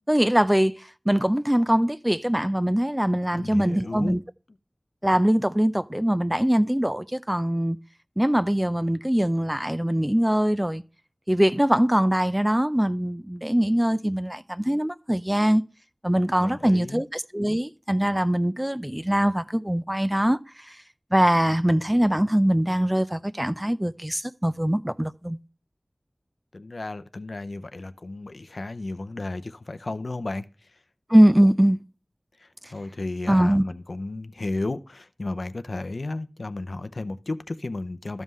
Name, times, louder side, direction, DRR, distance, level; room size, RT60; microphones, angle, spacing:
voice 1, 0.1-0.8 1.1-4.2 5.0-7.8 8.2-10.8 11.3-15.6 16.0-20.4 21.1-25.4 31.1-31.8 33.3-33.6, equal, 15° right, 0.5 m, -22 dB
voice 2, 3.3-4.2 16.4-17.0 26.5-30.4 32.4-38.2, left 2 dB, 80° left, 0.6 m, -33 dB
13.5 x 5.5 x 3.1 m
wide cardioid pair, 55°, 0 cm